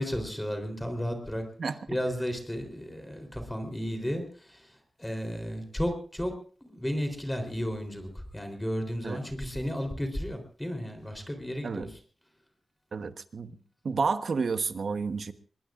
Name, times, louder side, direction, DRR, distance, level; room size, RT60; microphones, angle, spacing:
voice 1, 0.0-1.4 1.9-6.3 6.6-12.0, equal, 10° left, 5 dB, 3.6 m, -33 dB
voice 2, 12.9-13.6 13.8-15.3, right 4 dB, 75° right, 9 dB, 1.1 m, -30 dB
24.5 x 21.5 x 2.5 m, 0.43 s
wide cardioid pair, 105°, 0 cm